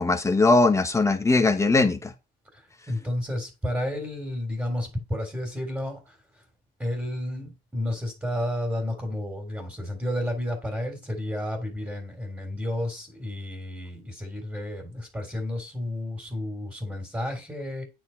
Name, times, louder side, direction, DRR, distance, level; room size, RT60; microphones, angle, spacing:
voice 1, 0.0-2.1, left 3 dB, 15° left, 1.2 m, -20 dB
voice 2, 2.5-6.2 6.8-17.8, left 1 dB, 10° right, 3.3 m, -31 dB
9.5 x 4.6 x 4.5 m
cardioid pair, 125°, 20 cm